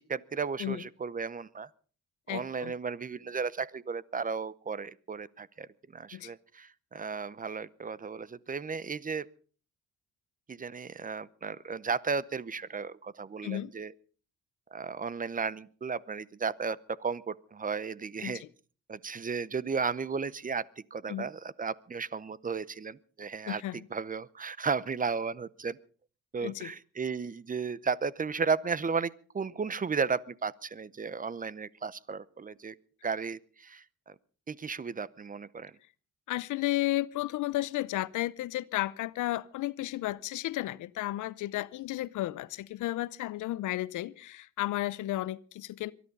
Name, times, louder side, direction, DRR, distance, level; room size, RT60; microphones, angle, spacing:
voice 1, 0.0-1.7 2.3-9.2 10.5-13.9 14.7-18.4 18.9-25.8 26.3-32.7 33.0-34.1 34.5-35.7, right 5 dB, 25° right, 0.7 m, -34 dB
voice 2, 2.3-2.7 6.1-6.3 13.4-13.7 18.2-18.5 21.1-21.3 23.5-23.9 26.4-26.7 36.3-45.9, left 15 dB, 80° left, 0.7 m, -33 dB
23.5 x 11.5 x 5.4 m
cardioid pair, 90°, 30 cm